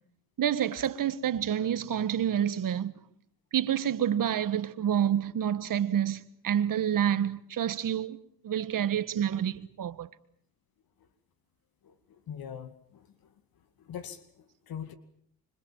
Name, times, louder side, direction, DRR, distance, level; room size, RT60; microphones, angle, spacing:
voice 1, 0.4-3.0 3.5-8.2 8.4-10.1, right 9 dB, 50° right, 1.7 m, -28 dB
voice 2, 11.8-13.3 13.8-14.9, left 8 dB, 60° left, 2.3 m, -43 dB
26.5 x 25.0 x 7.5 m
supercardioid pair, 80°, 40 cm